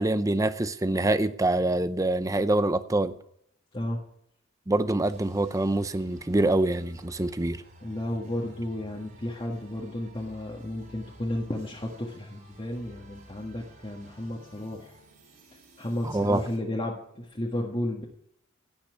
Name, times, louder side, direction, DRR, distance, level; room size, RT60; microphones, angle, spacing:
voice 1, 0.0-3.1 4.7-7.6 16.0-16.4, right 2 dB, 15° right, 0.6 m, -25 dB
sound 1, 5.0-16.6, right 1 dB, 40° right, 5.6 m, -53 dB
voice 2, 7.8-15.0 15.8-18.0, left 1 dB, 25° left, 1.6 m, -33 dB
17.0 x 5.8 x 9.6 m
head